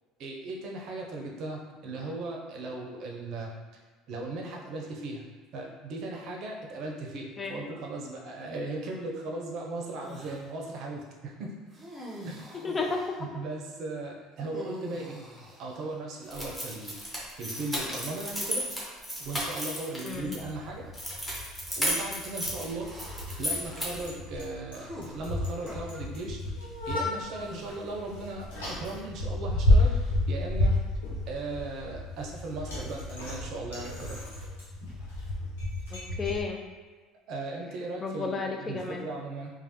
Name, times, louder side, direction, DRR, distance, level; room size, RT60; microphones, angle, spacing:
voice 1, 0.2-3.5 4.1-5.2 5.5-11.5 12.2-12.4 13.2-15.2 15.6-17.0 17.4-18.7 19.2-20.8 21.8-22.9 23.4-26.4 26.9-30.0 30.3-30.8 31.3-34.2 37.3-39.5, right 2 dB, 60° right, 0 dB, 0.6 m, -37 dB
sound 1, 10.0-10.5 11.7-13.2 14.4-16.7 17.5-18.1 19.2-19.7 20.5-20.7 22.8-23.5 24.7-25.8 27.4-28.2, equal, 25° right, 0.8 m, -45 dB
voice 2, 12.6-13.0 20.0-20.3 35.9-36.6 38.0-39.0, left 4 dB, 30° left, 2 dB, 0.4 m, -32 dB
sound 2, 16.3-20.4 20.9-24.1, equal, ahead, 1.0 m, -34 dB
Bicycle, 20.1-36.4, left 1 dB, 85° left, 1.0 m, -31 dB
3.2 x 2.2 x 2.9 m, 1.4 s
hypercardioid pair, 75°, 0 cm